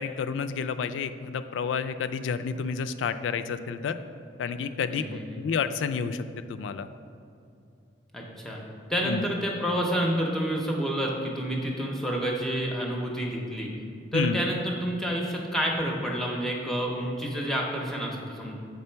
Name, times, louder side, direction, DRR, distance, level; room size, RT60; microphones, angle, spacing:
voice 1, 0.0-3.9 4.4-6.9 9.1-9.2 14.1-14.4, left 6 dB, 85° left, 11 dB, 0.3 m, -30 dB
voice 2, 4.9-5.4 8.1-8.6 8.9-13.7 14.1-18.6, equal, ahead, -1 dB, 0.6 m, -29 dB
6.7 x 3.7 x 4.4 m, 2.5 s
head